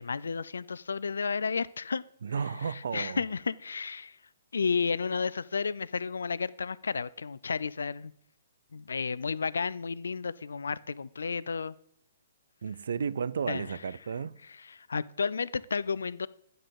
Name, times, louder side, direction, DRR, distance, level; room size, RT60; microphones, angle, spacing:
voice 1, 0.0-2.0 2.9-4.2 4.5-8.1 8.7-11.7 13.5-13.6 14.8-16.3, left 5 dB, 85° left, 0.3 m, -32 dB
voice 2, 2.2-3.2 12.6-14.4, right 6 dB, 75° right, 0.4 m, -33 dB
9.5 x 3.8 x 6.6 m
hypercardioid pair, 140°, 0 cm